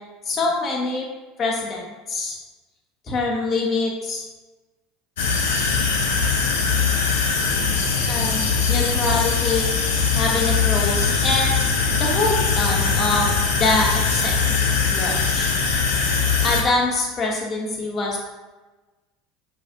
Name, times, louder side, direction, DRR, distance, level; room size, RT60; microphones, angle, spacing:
voice 1, 0.3-1.1 1.4-1.8 2.1-2.4 3.1-4.2 8.1-9.7 10.1-11.7 12.0-13.3 13.6-14.3 14.8-15.5 16.4-18.2, left 3 dB, 35° left, -1 dB, 1.0 m, -24 dB
sound 1, 5.2-16.6, left 5 dB, 65° left, 0.5 m, -21 dB
6.0 x 2.5 x 2.5 m, 1.2 s
figure-of-eight pair, 70°, 0 cm